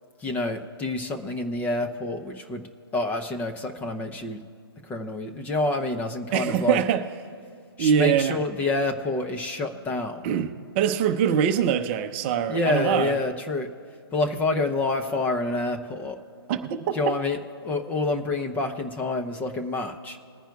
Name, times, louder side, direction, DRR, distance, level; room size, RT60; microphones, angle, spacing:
voice 1, 0.2-2.6 2.9-4.4 4.8-6.8 7.8-10.3 12.5-13.7 14.1-16.2 16.9-20.2, left 2 dB, 10° left, 0.6 m, -27 dB
voice 2, 6.3-7.0 7.8-8.4 10.2-13.1 16.5-17.0, right 8 dB, 25° right, 0.7 m, -23 dB
21.0 x 10.0 x 2.3 m
figure-of-eight pair, 135°, 13 cm